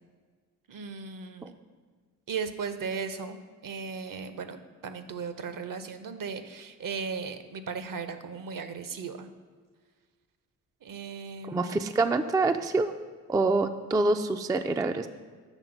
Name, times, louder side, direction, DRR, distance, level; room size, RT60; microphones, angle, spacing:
voice 1, 0.7-1.5 2.3-9.3 10.8-11.8, right 5 dB, 55° right, 10 dB, 0.7 m, -37 dB
voice 2, 11.5-12.9 13.3-15.1, right 3 dB, 10° right, 7 dB, 0.3 m, -26 dB
8.1 x 3.5 x 5.8 m, 1.5 s
supercardioid pair, 45°, 40 cm